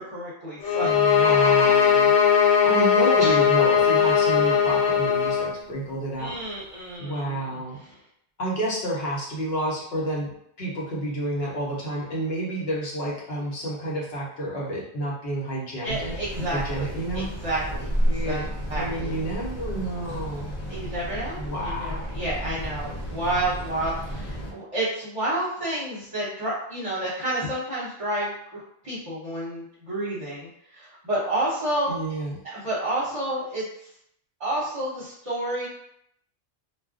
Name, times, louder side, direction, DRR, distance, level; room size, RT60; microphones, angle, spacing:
voice 1, 0.0-0.9 3.2-3.4 6.2-7.9 15.8-19.1 20.7-32.0 32.4-33.7 34.4-35.7, right 1 dB, 35° right, -7 dB, 0.7 m, -30 dB
sound 1, 0.6-5.5, left 7 dB, 85° left, 1.0 m, -19 dB
voice 2, 0.8-6.4 7.0-7.8 8.4-10.3 10.6-16.2 16.5-17.3 18.0-18.5 18.7-20.5 21.4-22.0 31.9-32.4, right 1 dB, 65° left, -3 dB, 1.1 m, -30 dB
sound 2, 15.9-24.5, equal, 40° left, 0.7 m, -32 dB
2.4 x 2.0 x 3.6 m, 0.73 s
omnidirectional pair, 1.2 m